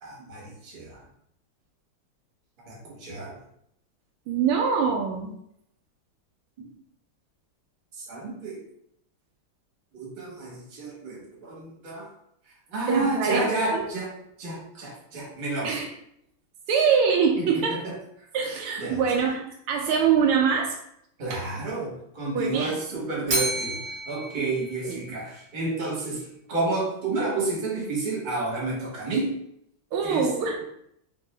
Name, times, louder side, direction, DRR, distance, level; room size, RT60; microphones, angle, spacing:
voice 1, 0.0-1.0 2.7-3.4 6.6-6.7 7.9-8.6 9.9-12.1 12.7-14.1 14.4-15.7 17.4-18.0 18.8-19.0 21.2-26.2 26.5-29.3 30.0-30.3, right 2 dB, 30° right, -5 dB, 1.0 m, -30 dB
voice 2, 4.3-5.4 12.9-13.5 13.7-13.9 15.6-15.9 16.7-17.8 18.3-20.8 21.3-21.4 22.3-22.7 24.8-25.0 29.9-30.6, right 6 dB, 80° right, 2 dB, 1.4 m, -24 dB
Bell, 23.3-25.5, right 1 dB, 60° right, 0.8 m, -31 dB
3.6 x 2.6 x 3.2 m, 0.73 s
omnidirectional pair, 2.4 m